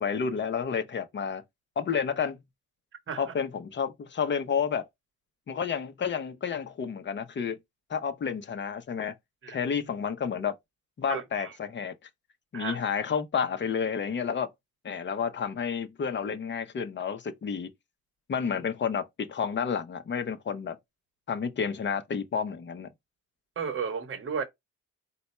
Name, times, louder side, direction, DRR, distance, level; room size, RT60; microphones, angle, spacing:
voice 1, 0.0-1.4 1.8-2.4 3.2-4.9 5.5-7.6 7.9-9.2 9.5-10.5 11.0-11.9 12.5-14.5 14.8-17.7 18.3-20.8 21.3-22.9, left 6 dB, 30° left, 0.6 m, -30 dB
voice 2, 11.1-11.5 12.5-12.8 23.6-24.4, right 6 dB, 35° right, 1.0 m, -33 dB
4.1 x 2.2 x 4.1 m
cardioid pair, 160°, 35 cm